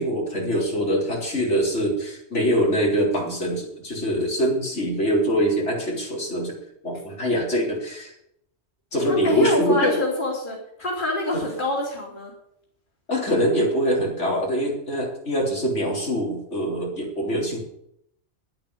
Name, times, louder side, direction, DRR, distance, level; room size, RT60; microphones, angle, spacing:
voice 1, 0.0-6.6 6.8-8.1 8.9-9.9 13.1-17.6, equal, 80° left, -2 dB, 4.4 m, -24 dB
voice 2, 9.1-12.3, left 1 dB, 45° left, -2 dB, 3.2 m, -25 dB
10.5 x 8.9 x 8.4 m, 0.73 s
omnidirectional pair, 1.2 m